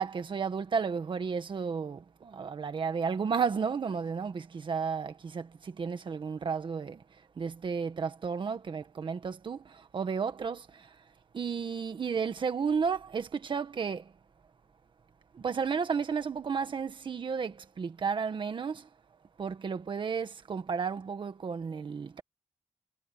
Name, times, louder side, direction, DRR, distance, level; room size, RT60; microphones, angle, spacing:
voice 1, 0.0-7.0 7.4-10.7 11.3-14.0 15.3-18.8 19.4-22.2, right 6 dB, 40° right, 1.7 m, -33 dB
wide cardioid pair, 170°, 12 cm